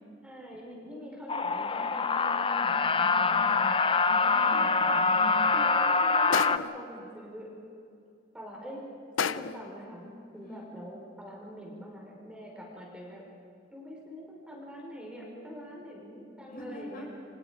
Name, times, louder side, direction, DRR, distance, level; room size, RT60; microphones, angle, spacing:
voice 1, 0.2-3.4 4.3-4.7 5.5-5.7 6.0-7.5 8.3-8.8 9.2-10.1 10.3-13.2 13.7-17.0, equal, 5° right, -3 dB, 5.4 m, -44 dB
sound 1, 1.3-6.6, left 4 dB, 25° left, 0.6 m, -25 dB
voice 2, 2.9-3.7 4.1-5.5 10.3-10.8 16.5-17.1, left 1 dB, 50° left, -1 dB, 6.1 m, -43 dB
sound 2, 6.3-6.9 9.2-9.7, left 6 dB, 90° left, 0.7 m, -30 dB
29.0 x 25.0 x 5.3 m, 2.4 s
head